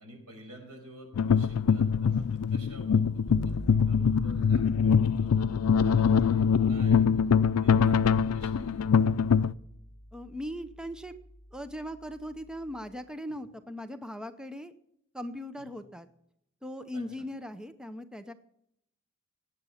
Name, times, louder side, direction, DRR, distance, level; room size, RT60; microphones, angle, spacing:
voice 1, 0.0-5.3 5.8-9.1 16.9-17.0, right 1 dB, 85° right, 3 dB, 5.7 m, -50 dB
sound 1, 1.1-9.5, left 6 dB, 80° left, 0.4 m, -24 dB
Bass guitar, 3.3-12.9, equal, 65° left, 1.4 m, -44 dB
voice 2, 10.1-11.1 11.5-14.7 15.1-16.1 16.6-18.3, equal, 5° right, 10 dB, 0.6 m, -39 dB
18.5 x 8.9 x 5.7 m, 0.77 s
head